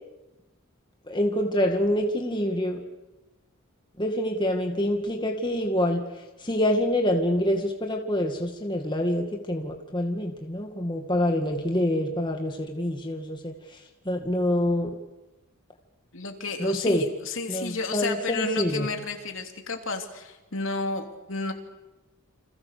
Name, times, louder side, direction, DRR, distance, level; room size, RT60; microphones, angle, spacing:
voice 1, 1.1-2.8 4.0-6.0 6.4-13.5 14.1-14.9 16.6-17.1 17.5-18.9, left 1 dB, 20° left, 3 dB, 2.1 m, -26 dB
voice 2, 16.1-21.5, left 3 dB, 65° left, 4 dB, 3.3 m, -32 dB
30.0 x 27.0 x 6.8 m, 1.0 s
head